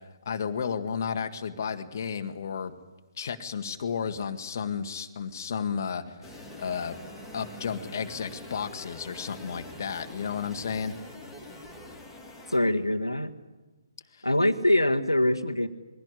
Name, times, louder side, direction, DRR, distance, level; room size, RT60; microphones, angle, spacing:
voice 1, 0.3-2.7 3.2-6.2 6.6-7.0 7.3-10.9 14.1-14.3, left 6 dB, 45° left, 8 dB, 1.8 m, -32 dB
sound 1, 6.2-12.6, left 1 dB, ahead, 3.1 m, -45 dB
voice 2, 12.5-13.3 14.2-15.7, left 1 dB, 90° left, 6 dB, 1.7 m, -23 dB
22.0 x 17.0 x 9.9 m, 1.2 s
figure-of-eight pair, 140°, 2 cm